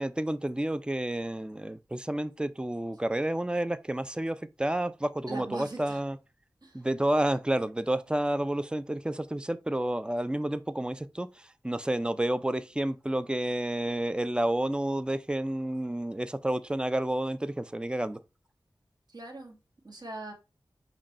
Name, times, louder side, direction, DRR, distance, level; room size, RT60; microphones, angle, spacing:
voice 1, 0.0-6.2 6.7-18.2, right 1 dB, 10° right, 0.4 m, -30 dB
voice 2, 5.3-6.0 6.6-6.8 19.1-19.6 19.8-20.3, right 2 dB, 55° right, 1.5 m, -40 dB
5.0 x 2.3 x 4.1 m
cardioid pair, 40°, 8 cm